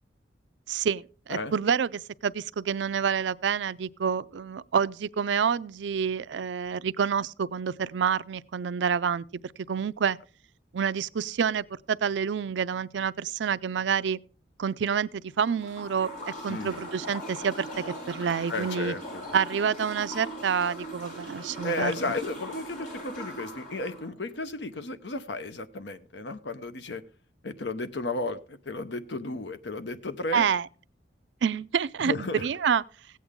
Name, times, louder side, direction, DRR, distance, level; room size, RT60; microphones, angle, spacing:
voice 1, 0.7-9.2 9.7-10.2 10.7-14.2 14.6-16.1 16.4-18.9 19.3-22.1 30.3-30.7 31.4-32.8, right 7 dB, 80° right, 0.4 m, -28 dB
sound 1, 15.4-24.1, equal, 45° left, 5.8 m, -40 dB
voice 2, 16.5-16.8 18.5-19.3 21.6-27.0 27.4-30.5 32.0-32.5, left 2 dB, 70° left, 0.9 m, -34 dB
16.0 x 8.5 x 3.7 m
head